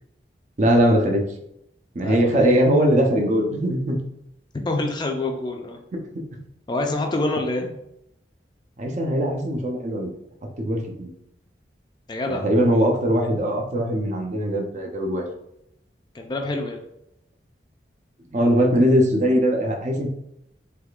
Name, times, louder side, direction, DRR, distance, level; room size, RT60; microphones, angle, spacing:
voice 1, 0.6-1.2 1.9-4.0 5.9-6.1 8.8-10.1 10.6-11.1 12.3-15.3 18.3-20.1, equal, 40° right, 1 dB, 0.6 m, -20 dB
voice 2, 2.0-2.6 4.6-5.8 6.7-7.7 12.1-12.4 16.1-16.8, left 2 dB, 25° left, 3 dB, 0.4 m, -26 dB
3.5 x 3.2 x 2.4 m, 0.79 s
head